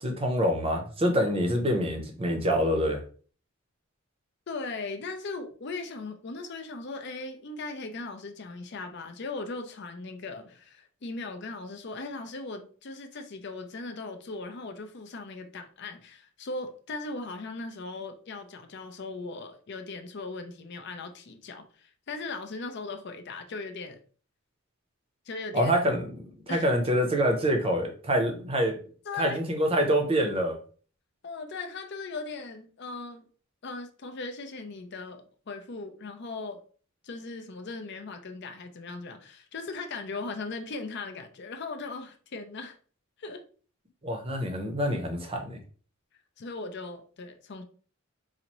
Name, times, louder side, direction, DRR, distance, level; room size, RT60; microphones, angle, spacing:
voice 1, 0.0-3.0 25.5-28.8 29.2-30.5 44.0-45.6, equal, 25° right, 0.6 m, -26 dB
voice 2, 4.5-24.0 25.3-25.7 26.5-26.7 29.0-29.4 31.2-33.3 33.6-36.6 37.0-42.8 43.2-43.5 46.4-47.6, left 3 dB, 55° left, 0.5 m, -38 dB
4.1 x 2.5 x 3.0 m
head